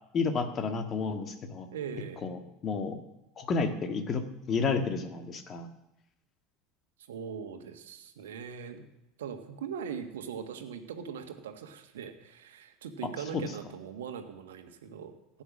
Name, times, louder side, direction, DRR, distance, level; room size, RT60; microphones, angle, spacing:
voice 1, 0.1-1.7 2.2-3.0 3.4-5.7 13.3-13.5, left 4 dB, 35° left, 7 dB, 1.9 m, -31 dB
voice 2, 1.7-2.3 7.1-8.8 9.2-15.1, right 7 dB, 65° right, 7 dB, 1.5 m, -40 dB
16.0 x 9.1 x 6.3 m, 0.90 s
figure-of-eight pair, 70°, 0 cm